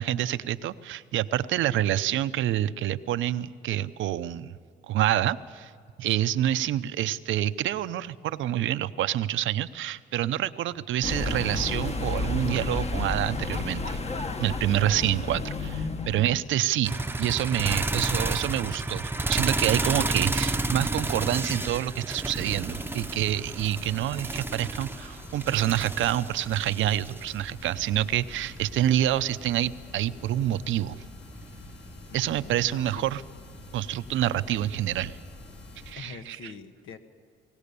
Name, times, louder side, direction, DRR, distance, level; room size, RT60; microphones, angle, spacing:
voice 1, 0.0-4.5 4.9-5.7 6.0-14.0 14.4-31.0 32.1-33.2 33.7-35.2 35.9-36.5, right 12 dB, 80° right, 13 dB, 0.7 m, -27 dB
voice 2, 6.5-6.8 16.8-17.2 17.9-18.4 32.1-33.0 34.4-34.7 35.9-37.0, left 5 dB, 80° left, 7 dB, 1.6 m, -46 dB
sound 1, 11.0-16.5, left 3 dB, 30° left, 1.3 m, -31 dB
sound 2, 16.8-29.7 31.4-32.0 33.7-33.8, right 2 dB, 10° right, 0.8 m, -31 dB
sound 3, 22.2-35.9, left 2 dB, 60° left, 6.3 m, -46 dB
22.0 x 18.5 x 6.9 m, 2.2 s
cardioid pair, 90°, 20 cm